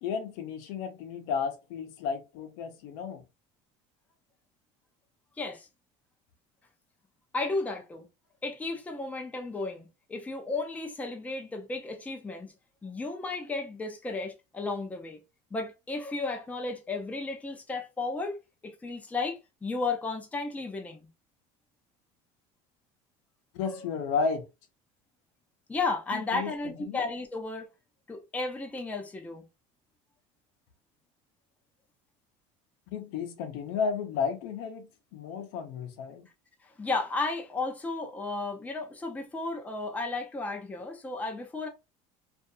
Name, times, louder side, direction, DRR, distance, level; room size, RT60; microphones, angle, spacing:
voice 1, 0.0-3.2 23.5-24.5 26.1-27.0 32.9-36.3, left 6 dB, 75° left, 0.6 m, -33 dB
voice 2, 5.4-5.7 7.3-8.1 8.4-12.5 12.8-15.2 15.5-18.4 18.6-21.0 25.7-27.7 28.1-29.5 36.6-41.7, left 3 dB, 10° left, 0.5 m, -34 dB
2.6 x 2.4 x 2.3 m
supercardioid pair, 125°, 15 cm